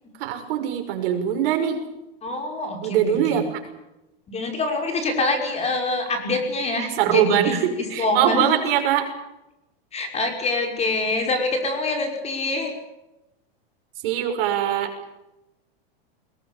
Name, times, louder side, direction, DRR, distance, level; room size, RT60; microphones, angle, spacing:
voice 1, 0.2-1.8 2.8-3.6 6.7-9.1 14.0-14.9, right 10 dB, 60° right, 5 dB, 6.3 m, -22 dB
voice 2, 2.2-3.4 4.3-7.6 8.0-8.6 9.9-12.7, left 2 dB, 20° left, 4 dB, 5.7 m, -25 dB
21.5 x 21.5 x 8.6 m, 0.93 s
supercardioid pair, 135°, 31 cm